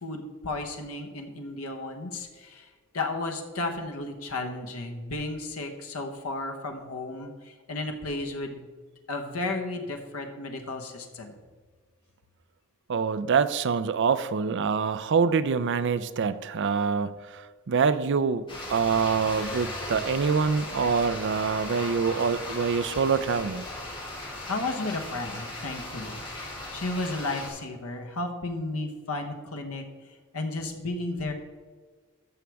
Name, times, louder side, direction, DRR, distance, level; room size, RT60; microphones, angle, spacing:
voice 1, 0.0-2.7 2.9-8.7 9.1-11.3 24.5-26.2 26.7-29.9 30.3-31.3, left 2 dB, 90° left, 4 dB, 1.1 m, -33 dB
voice 2, 12.9-18.4 18.7-23.7, right 5 dB, 55° right, 13 dB, 0.5 m, -25 dB
sound 1, 18.5-27.5, left 1 dB, 25° left, 2.5 m, -37 dB
14.0 x 6.3 x 3.5 m, 1.5 s
head